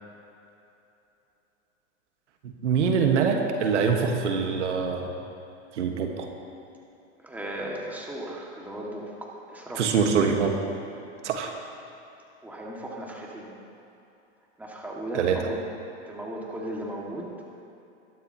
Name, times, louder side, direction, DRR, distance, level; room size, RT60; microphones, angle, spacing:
voice 1, 2.6-5.1 5.7-6.3 9.8-10.5 11.2-11.5 15.1-15.4, right 6 dB, 80° right, 3 dB, 1.7 m, -24 dB
voice 2, 7.2-10.0 12.4-13.5 14.6-15.6 16.1-17.3, right 1 dB, 5° right, -3 dB, 2.1 m, -36 dB
21.5 x 11.5 x 3.0 m, 2.8 s
hypercardioid pair, 125°, 35 cm